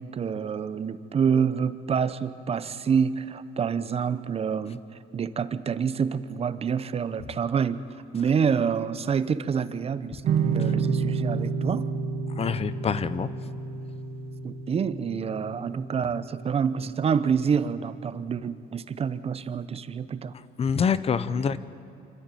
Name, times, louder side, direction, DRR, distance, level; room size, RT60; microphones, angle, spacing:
voice 1, 0.0-4.8 5.1-7.8 8.1-11.8 14.4-20.3, right 6 dB, 35° right, 14 dB, 0.8 m, -27 dB
sound 1, 10.2-17.4, right 5 dB, 60° right, 1.9 m, -30 dB
voice 2, 12.3-13.3 20.6-21.6, left 6 dB, 35° left, 15 dB, 0.7 m, -26 dB
26.0 x 13.5 x 9.1 m, 2.8 s
cardioid pair, 110°, 17 cm